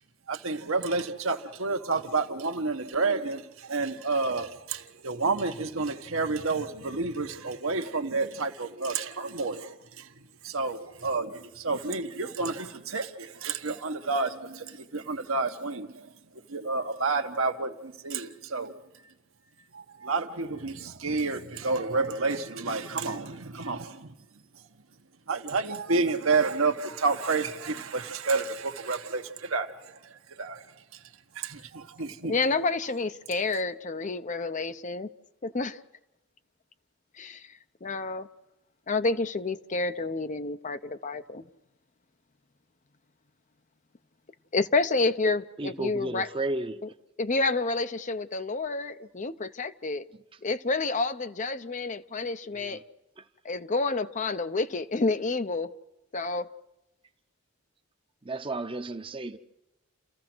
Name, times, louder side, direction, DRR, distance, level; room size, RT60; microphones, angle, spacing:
voice 1, 0.3-10.0 10.4-16.0 16.5-18.7 19.7-24.1 25.3-29.8 30.4-30.6 31.4-32.3, right 3 dB, 75° right, 1.4 m, -30 dB
voice 2, 32.2-35.1 35.4-35.8 37.2-37.5 37.8-38.3 38.9-41.4 44.5-46.3 47.2-50.0 50.4-52.8 53.4-55.7 56.1-56.5, left 3 dB, 35° left, 0.7 m, -29 dB
voice 3, 45.6-46.8 52.5-52.8 53.2-53.3 58.2-59.4, right 2 dB, 25° right, 0.8 m, -33 dB
29.5 x 14.5 x 6.2 m
head